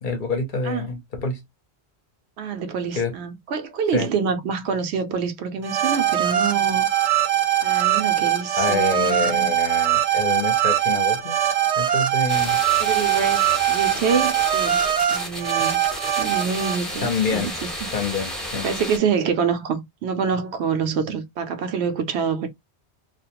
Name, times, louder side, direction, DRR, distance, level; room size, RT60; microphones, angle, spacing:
voice 1, 0.0-1.4 3.0-3.1 3.9-4.1 8.6-11.4 11.8-12.6 17.0-17.5 17.9-18.7, left 4 dB, 55° left, 0.7 m, -26 dB
voice 2, 2.4-6.9 7.6-9.5 12.8-15.8 16.2-17.7 18.6-22.5, right 6 dB, 80° right, 0.9 m, -26 dB
sound 1, 5.6-16.8, right 11 dB, 45° right, 0.6 m, -21 dB
sound 2, 12.3-19.0, equal, ahead, 0.6 m, -32 dB
2.4 x 2.1 x 2.8 m
omnidirectional pair, 1.1 m